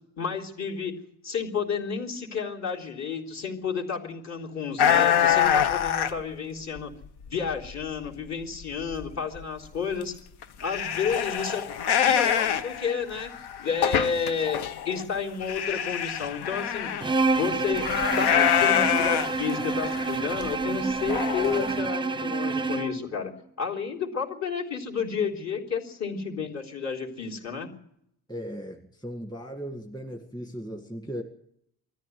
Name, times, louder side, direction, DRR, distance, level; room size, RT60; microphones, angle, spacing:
voice 1, 0.2-0.9 1.2-6.9 7.3-10.1 10.6-11.7 12.0-13.3 13.6-16.9 17.3-17.9 18.2-23.3 23.6-27.7, left 6 dB, 45° left, 0 dB, 3.7 m, -31 dB
sound 1, 4.8-6.2 6.8-7.7 8.0-8.1 8.6-8.7 8.9-9.1 9.3-9.4 10.0-10.1 10.4-15.0 15.4-17.1 17.7-20.1 20.4-20.5 21.1-21.7, left 9 dB, 80° left, 1.4 m, -25 dB
Bowed string instrument, 17.0-23.0, right 3 dB, 10° right, 0.7 m, -28 dB
voice 2, 28.3-31.2, equal, 10° left, 3 dB, 1.9 m, -37 dB
21.5 x 14.0 x 9.4 m, 0.74 s
cardioid pair, 150°, 39 cm